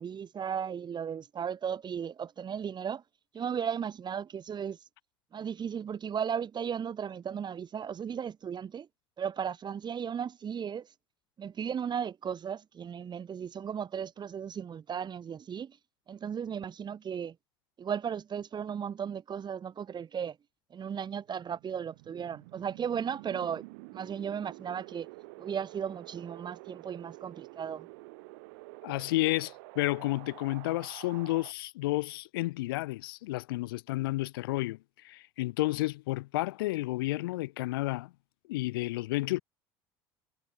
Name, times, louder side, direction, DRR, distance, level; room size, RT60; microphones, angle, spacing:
voice 1, 0.0-3.0 3.3-4.8 5.3-8.9 9.2-10.9 11.4-15.8 16.1-17.4 17.8-20.4 20.7-23.6 23.9-25.1 25.4-27.9, right 8 dB, 40° right, 4.0 m, -35 dB
Wind, 21.4-31.5, right 29 dB, 75° right, 6.5 m, -49 dB
voice 2, 28.8-34.8 35.0-38.1 38.5-39.4, left 19 dB, 80° left, 0.5 m, -31 dB
hypercardioid pair, 70°, 12 cm